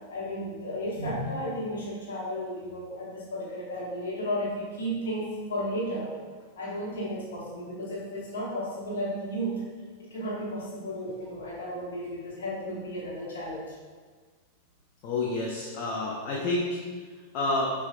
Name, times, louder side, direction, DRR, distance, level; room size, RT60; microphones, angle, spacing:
voice 1, 0.1-6.1 6.6-9.6 10.0-13.8, equal, 60° left, -5 dB, 1.0 m, -33 dB
voice 2, 15.0-16.7 17.3-17.7, left 2 dB, 40° left, -3 dB, 0.5 m, -28 dB
5.7 x 2.3 x 2.4 m, 1.5 s
figure-of-eight pair, 90°, 0 cm